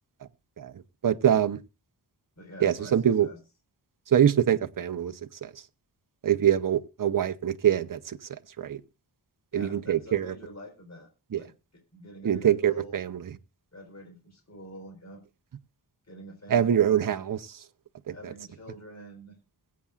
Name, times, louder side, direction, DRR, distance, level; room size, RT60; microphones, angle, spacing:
voice 1, 1.0-1.6 2.6-3.3 4.1-5.1 5.4-5.5 6.2-8.2 8.6-8.8 9.5-10.3 11.3-11.4 12.2-13.2 16.5-17.4 18.1-18.2, right 9 dB, 55° right, 0.8 m, -24 dB
voice 2, 2.4-3.4 9.5-11.1 11.3-12.9 13.7-15.2 16.1-17.2 18.1-19.4, equal, 40° left, 4.1 m, -46 dB
22.0 x 8.5 x 2.4 m
wide cardioid pair, 115°, 40 cm